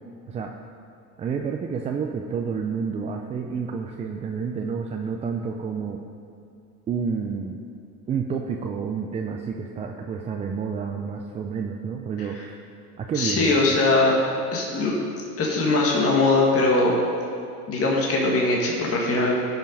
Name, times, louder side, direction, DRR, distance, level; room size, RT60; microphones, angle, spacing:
voice 1, 1.2-6.0 6.9-7.6 8.1-12.4 13.0-13.5, right 6 dB, 15° right, 2 dB, 0.3 m, -29 dB
voice 2, 13.2-14.2 14.5-14.9 15.4-17.0 17.7-19.4, left 2 dB, 30° left, -3 dB, 1.8 m, -21 dB
13.5 x 5.8 x 5.3 m, 2.4 s
hypercardioid pair, 95°, 47 cm